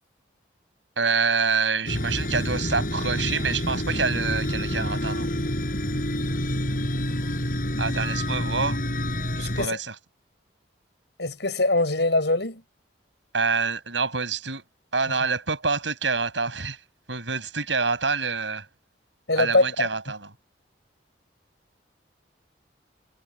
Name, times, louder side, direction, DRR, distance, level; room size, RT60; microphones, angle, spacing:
voice 1, 1.0-5.3 7.8-8.8 9.4-9.9 13.3-14.6 14.9-16.8 17.1-18.7 19.3-20.3, right 4 dB, 80° right, 8.0 m, -26 dB
sound 1, 1.9-9.7, left 1 dB, 45° left, 6.7 m, -28 dB
voice 2, 9.4-9.8 11.2-12.6 19.3-19.9, left 2 dB, 70° left, 6.0 m, -23 dB
head